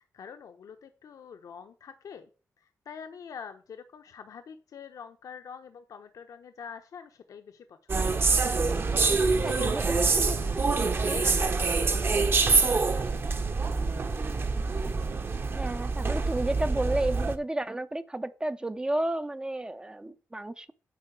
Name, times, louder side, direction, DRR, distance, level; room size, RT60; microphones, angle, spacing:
voice 1, 0.0-2.3 2.6-8.4 9.0-10.6 11.0-13.1, left 6 dB, 75° left, 0.9 m, -45 dB
sound 1, 7.9-17.4, right 4 dB, 40° right, 0.9 m, -26 dB
voice 2, 9.4-10.4 11.1-11.2 14.8-14.9 15.5-20.7, right 1 dB, 15° right, 0.5 m, -32 dB
9.5 x 4.2 x 7.3 m
wide cardioid pair, 130°, 6 cm